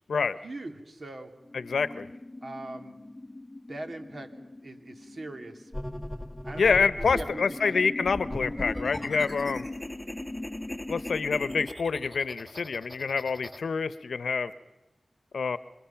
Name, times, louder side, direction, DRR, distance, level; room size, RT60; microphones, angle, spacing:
voice 1, 0.4-1.3 2.4-3.0 3.7-5.7 6.4-8.2, right 2 dB, 60° right, 5 dB, 2.6 m, -41 dB
sound 1, 1.4-11.7, left 2 dB, 20° left, 0.9 m, -41 dB
voice 2, 1.5-2.1 6.6-9.7 10.9-14.5 15.3-15.6, left 5 dB, 85° left, 15 dB, 0.8 m, -27 dB
sound 2, 5.7-7.3 8.0-13.6, left 1 dB, 5° left, 1.9 m, -39 dB
27.0 x 25.0 x 5.8 m, 1.0 s
cardioid pair, 45°, 0 cm